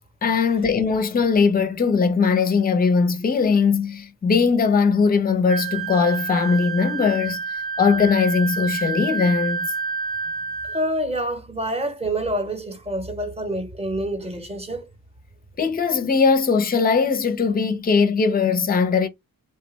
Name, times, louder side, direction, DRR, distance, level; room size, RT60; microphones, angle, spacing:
voice 1, 0.2-9.7 15.6-19.1, left 5 dB, 25° left, 0.5 m, -20 dB
Wind instrument woodwind instrument, 5.5-10.9, right 5 dB, 85° right, 1.3 m, -29 dB
voice 2, 10.7-14.9, right 1 dB, 15° right, 0.9 m, -27 dB
3.2 x 2.1 x 3.0 m
cardioid pair, 115°, 35 cm